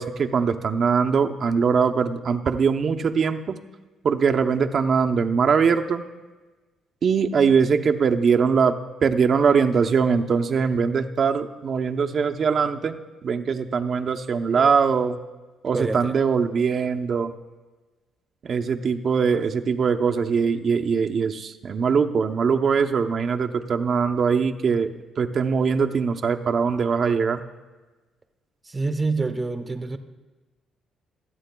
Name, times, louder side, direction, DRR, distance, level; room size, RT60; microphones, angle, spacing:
voice 1, 0.0-3.6 4.0-6.0 7.0-8.8 9.0-15.2 15.6-17.3 18.4-27.4, right 6 dB, 50° right, 6 dB, 0.7 m, -22 dB
voice 2, 15.7-16.1 28.6-30.0, right 3 dB, 25° right, 7 dB, 1.0 m, -27 dB
26.5 x 8.9 x 2.3 m, 1.2 s
cardioid pair, 90°, 0 cm